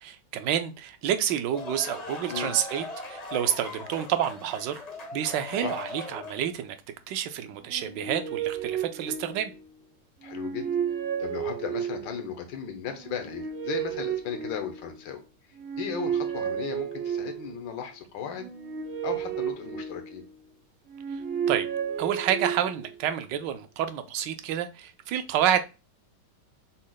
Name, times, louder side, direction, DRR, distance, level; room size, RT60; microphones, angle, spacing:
voice 1, 0.0-4.8 5.1-6.8 7.1-9.5 21.5-21.7 22.0-25.6, right 10 dB, 80° right, 1.2 m, -29 dB
sound 1, 1.3-6.6, left 2 dB, 55° left, 0.4 m, -39 dB
sound 2, 7.6-9.7 10.2-12.2 12.9-15.1 15.5-17.6 18.3-20.4 20.9-22.9, right 8 dB, 60° right, 0.6 m, -32 dB
voice 2, 10.2-10.7 11.2-15.2 15.8-18.5 19.0-20.2, left 8 dB, 90° left, 1.5 m, -36 dB
6.2 x 2.1 x 3.8 m
omnidirectional pair, 2.0 m